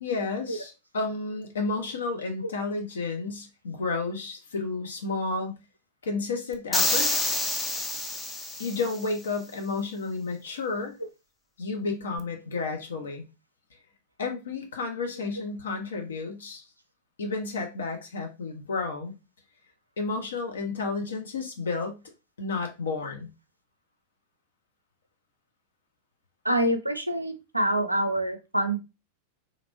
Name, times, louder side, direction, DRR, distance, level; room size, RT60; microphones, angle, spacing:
voice 1, 0.0-5.6 6.0-7.3 8.6-10.9 11.6-13.2 14.2-16.6 17.2-19.1 20.0-22.0 22.4-23.3, left 3 dB, 65° left, 0.8 m, -31 dB
sound 1, 6.7-9.0, left 2 dB, 10° left, 0.5 m, -27 dB
voice 2, 26.4-28.8, right 1 dB, 85° right, 0.4 m, -26 dB
3.1 x 2.5 x 2.6 m
figure-of-eight pair, 90°, 0 cm